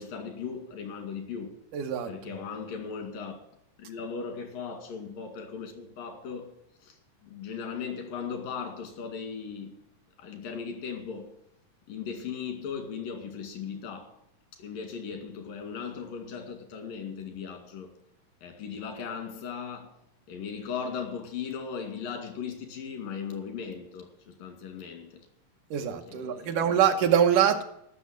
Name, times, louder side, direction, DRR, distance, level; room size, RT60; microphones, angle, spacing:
voice 1, 0.0-1.6 2.1-3.4 3.8-6.5 6.8-9.8 10.2-11.3 11.9-14.2 14.5-17.9 18.4-20.0 20.3-25.3 26.1-26.8, left 6 dB, 90° left, 4.0 m, -38 dB
voice 2, 1.7-2.1 25.7-27.6, right 9 dB, 75° right, 2.4 m, -24 dB
14.0 x 6.6 x 7.5 m
omnidirectional pair, 3.9 m